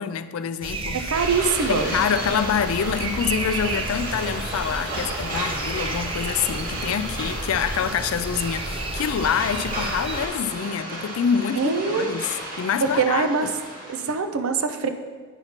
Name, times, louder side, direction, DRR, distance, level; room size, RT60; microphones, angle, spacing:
voice 1, 0.0-1.1 1.7-13.5, left 7 dB, 75° left, 12 dB, 0.3 m, -26 dB
sound 1, 0.6-10.3, right 2 dB, 25° right, 0.4 m, -32 dB
voice 2, 0.9-1.9 11.5-12.1 13.0-13.5 13.9-14.9, right 5 dB, 75° right, 7 dB, 0.5 m, -23 dB
sound 2, 1.1-14.2, right 1 dB, 40° right, 1.3 m, -33 dB
8.9 x 5.7 x 2.9 m, 1.5 s
head